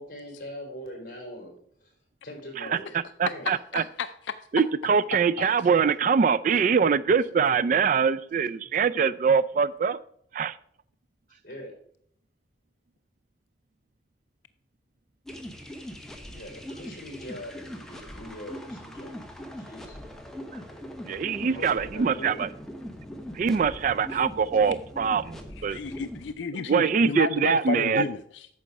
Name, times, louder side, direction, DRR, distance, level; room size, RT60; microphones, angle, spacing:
voice 1, 0.0-1.5 1.8-1.9 2.2-3.0 3.2-3.5 11.3-11.8 16.3-19.2 19.6-20.0 21.4-22.5, equal, 50° left, 1 dB, 4.0 m, -42 dB
voice 2, 2.6-3.8 4.5-10.0 10.3-10.6 20.5-20.6 21.1-22.5 23.3-25.8 26.5-28.0, right 6 dB, 45° right, 16 dB, 0.3 m, -24 dB
voice 3, 3.5-4.1 5.4-5.5 25.7-28.5, left 5 dB, 85° left, 11 dB, 0.4 m, -32 dB
sound 1, 15.3-26.3, equal, 5° left, 1.0 m, -41 dB
9.2 x 6.6 x 4.7 m, 0.66 s
head